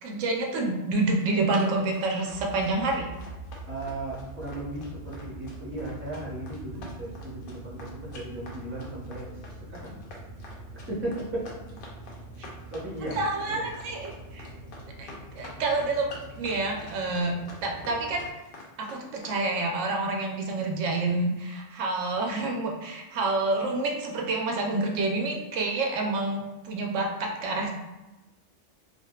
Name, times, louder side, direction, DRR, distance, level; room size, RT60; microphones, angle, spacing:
voice 1, 0.0-3.1 6.7-6.9 13.1-14.5 15.0-15.1 15.4-17.3 17.6-18.3 18.8-27.7, right 2 dB, 85° right, 0 dB, 1.0 m, -28 dB
Run, 1.2-19.7, left 2 dB, 55° left, 0.7 m, -46 dB
sound 1, 2.3-18.3, right 2 dB, 60° right, 0.7 m, -44 dB
voice 2, 3.7-9.3 9.7-9.9 10.9-11.5 12.7-13.2 13.5-13.6, right 1 dB, 10° right, -6 dB, 0.6 m, -36 dB
3.6 x 2.3 x 2.3 m, 1.1 s
omnidirectional pair, 1.3 m